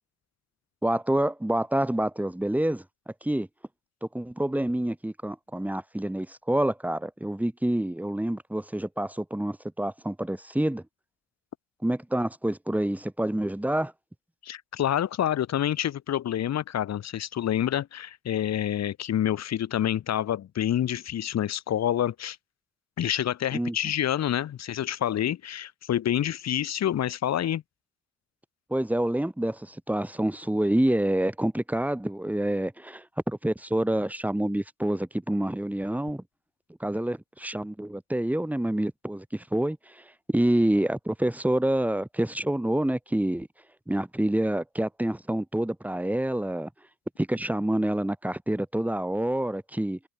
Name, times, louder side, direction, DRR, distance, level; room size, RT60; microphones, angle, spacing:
voice 1, 0.8-2.8 3.2-3.5 4.1-10.8 11.8-13.9 23.5-23.8 28.7-36.2 36.8-43.5 43.9-46.7 47.2-50.0, right 1 dB, 5° right, 7.0 m, -27 dB
voice 2, 14.4-22.4 23.0-27.6, left 11 dB, 60° left, 4.6 m, -27 dB
cardioid pair, 110°, 30 cm